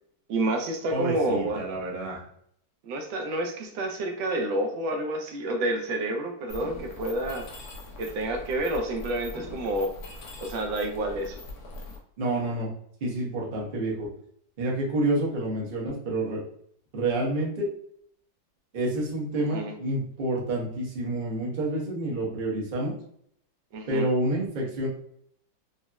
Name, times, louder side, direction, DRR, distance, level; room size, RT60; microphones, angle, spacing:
voice 1, 0.3-1.7 2.8-7.5 8.0-9.9 10.4-11.4 19.4-19.7 23.7-24.1, right 1 dB, 80° right, 3 dB, 1.3 m, -29 dB
voice 2, 0.9-2.2 12.2-12.7 13.0-14.1 14.6-16.4 16.9-17.7 18.7-22.9 23.9-24.9, right 1 dB, 45° right, -4 dB, 0.7 m, -28 dB
Mechanisms, 6.5-12.0, left 2 dB, 80° left, 0.6 m, -42 dB
4.0 x 2.0 x 2.3 m, 0.67 s
omnidirectional pair, 2.1 m